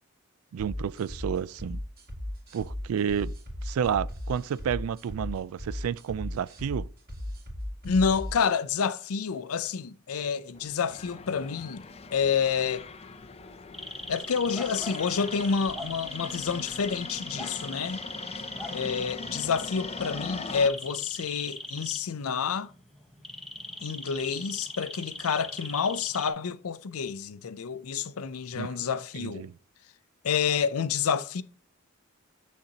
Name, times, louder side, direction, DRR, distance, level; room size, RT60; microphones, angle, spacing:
voice 1, 0.5-1.8 2.5-3.3 3.6-6.9 28.6-28.7 29.2-29.5, right 8 dB, 75° right, 0.3 m, -30 dB
sound 1, 0.6-8.6, left 1 dB, 45° right, 2.2 m, -37 dB
voice 2, 7.8-11.8 12.1-12.9 14.1-18.0 18.7-22.7 23.8-29.5 30.2-31.4, left 6 dB, 85° left, 0.5 m, -29 dB
sound 2, 10.5-20.7, left 4 dB, 30° left, 0.5 m, -42 dB
sound 3, 13.7-26.3, left 1 dB, ahead, 0.8 m, -40 dB
7.4 x 6.5 x 2.8 m
head